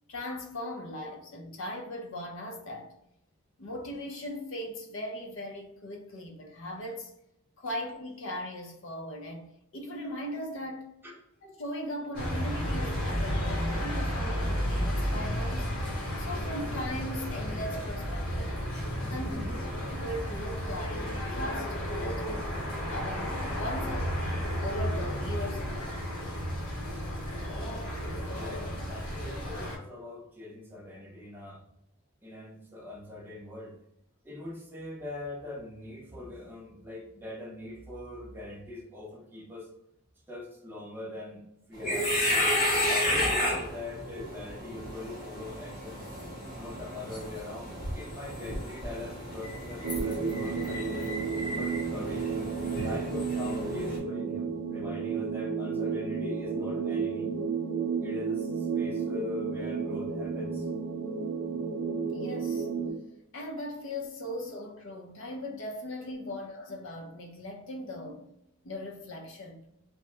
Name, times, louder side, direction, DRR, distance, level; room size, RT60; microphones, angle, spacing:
voice 1, 0.1-2.9 3.6-7.1 7.6-10.9 11.4-15.7 16.2-18.6 19.1-19.3 19.8-22.5 22.9-24.1 24.6-26.0 62.1-62.7 63.3-68.2 68.6-69.6, left 1 dB, 60° left, 0.6 m, -39 dB
sound 1, 12.1-29.8, equal, 80° left, 1.0 m, -32 dB
voice 2, 18.7-19.6 28.1-31.6 32.2-33.8 34.2-39.7 40.3-41.4 41.7-42.5 42.9-46.0 46.5-51.1 51.5-52.3 52.8-57.3 58.0-60.7 66.2-66.3 68.0-68.1, left 2 dB, 10° right, 0.5 m, -42 dB
sound 2, 41.7-54.0, left 1 dB, 40° left, 0.9 m, -32 dB
sound 3, 49.8-62.9, right 5 dB, 85° right, 0.6 m, -32 dB
2.8 x 2.1 x 3.2 m
head